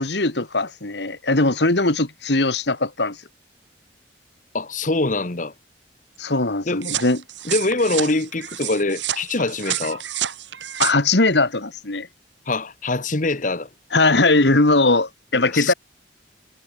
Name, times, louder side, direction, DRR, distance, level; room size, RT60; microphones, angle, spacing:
voice 1, 0.0-3.2 6.2-7.2 10.8-12.1 13.9-15.7, left 2 dB, 70° left, 2.3 m, -20 dB
voice 2, 4.5-5.5 6.6-6.8 7.4-10.0 12.5-13.7 15.3-15.7, left 2 dB, 45° left, 1.4 m, -24 dB
sound 1, 6.8-10.9, right 11 dB, 85° right, 2.4 m, -29 dB
head